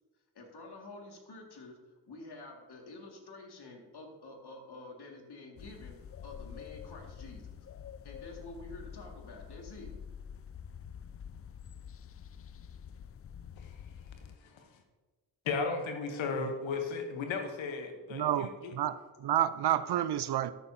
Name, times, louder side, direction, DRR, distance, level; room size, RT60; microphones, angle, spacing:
voice 1, 0.3-7.6 8.0-10.0, left 2 dB, 60° left, 2.1 m, -49 dB
sound 1, 5.6-14.4, left 8 dB, 35° left, 0.4 m, -47 dB
voice 2, 15.4-18.8, left 4 dB, 85° left, 1.0 m, -35 dB
voice 3, 18.1-20.5, right 11 dB, 60° right, 0.5 m, -30 dB
13.0 x 6.8 x 2.7 m
supercardioid pair, 40°, 45 cm